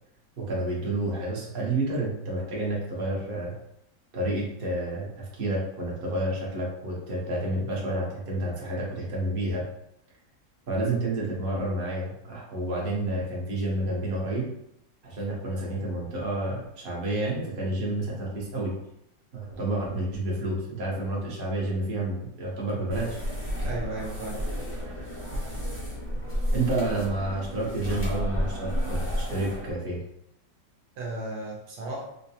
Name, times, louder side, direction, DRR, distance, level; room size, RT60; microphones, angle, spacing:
voice 1, 0.4-3.5 4.1-9.6 10.7-14.5 15.0-18.7 19.3-23.2 26.5-30.0, right 1 dB, 45° right, -4 dB, 0.8 m, -30 dB
sound 1, 22.9-29.7, equal, 15° left, 0.4 m, -31 dB
voice 2, 23.6-24.4 31.0-32.0, right 2 dB, 70° right, -2 dB, 1.1 m, -34 dB
4.2 x 2.2 x 2.7 m, 0.79 s
omnidirectional pair, 2.1 m